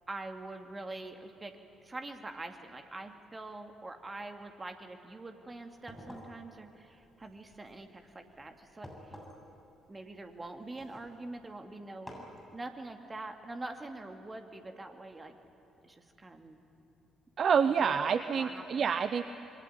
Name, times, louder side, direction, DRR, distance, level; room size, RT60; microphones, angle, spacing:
voice 1, 0.1-9.1 9.9-12.3 12.5-15.4 15.8-16.6 17.8-18.9, right 2 dB, 25° right, 5 dB, 2.5 m, -44 dB
sound 1, 5.6-11.5 12.1-12.4, equal, 5° left, 7.8 m, -52 dB
voice 2, 17.4-19.2, right 6 dB, 45° right, 12 dB, 0.7 m, -27 dB
27.0 x 21.5 x 9.7 m, 2.8 s
figure-of-eight pair, 45°, 0 cm